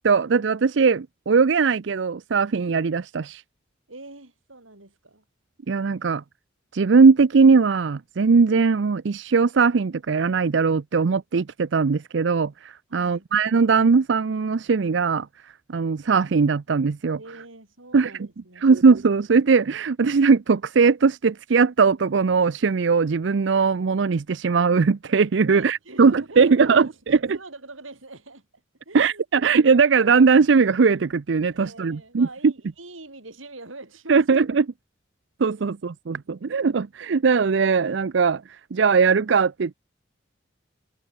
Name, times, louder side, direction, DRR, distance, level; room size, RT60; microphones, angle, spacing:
voice 1, 0.0-3.4 5.7-6.2 6.7-15.3 15.7-17.2 17.9-18.1 18.6-27.2 28.9-32.5 34.1-34.7 35.4-39.7, right 5 dB, 65° right, 0.5 m, -20 dB
voice 2, 3.9-5.2 12.9-13.3 17.2-18.8 25.4-29.2 31.5-34.2, right 2 dB, 85° right, 5.6 m, -44 dB
head